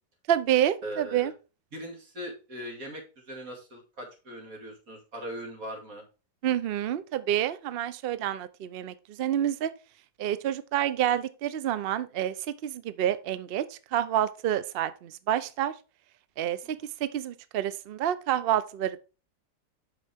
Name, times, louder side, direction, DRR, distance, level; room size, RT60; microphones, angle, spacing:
voice 1, 0.3-1.3 6.4-9.7 10.2-12.3 12.6-15.7 16.4-19.0, right 11 dB, 80° right, 0.5 m, -28 dB
voice 2, 0.8-1.3 1.7-6.0 16.6-16.9, equal, 55° right, 2.7 m, -40 dB
8.3 x 6.0 x 3.5 m
omnidirectional pair, 1.7 m